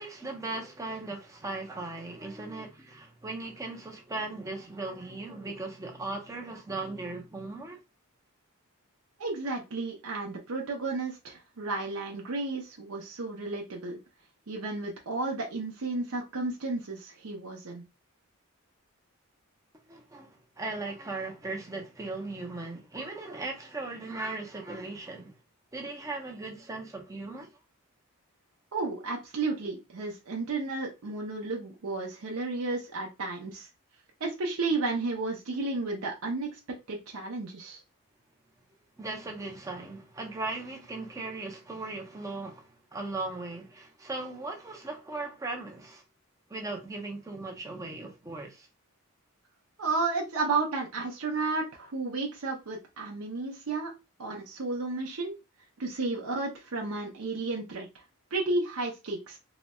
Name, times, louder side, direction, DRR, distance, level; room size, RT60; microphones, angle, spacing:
voice 1, 0.0-7.8 19.9-25.4 25.7-27.5 39.0-46.0 46.5-48.7, right 2 dB, 15° right, 0.6 m, -38 dB
voice 2, 9.2-14.0 14.5-17.8 28.7-33.7 34.2-36.5 36.9-37.8 49.8-53.9 54.2-55.3 55.8-57.9 58.3-59.4, right 3 dB, 65° right, 0.6 m, -32 dB
3.9 x 2.1 x 2.2 m
head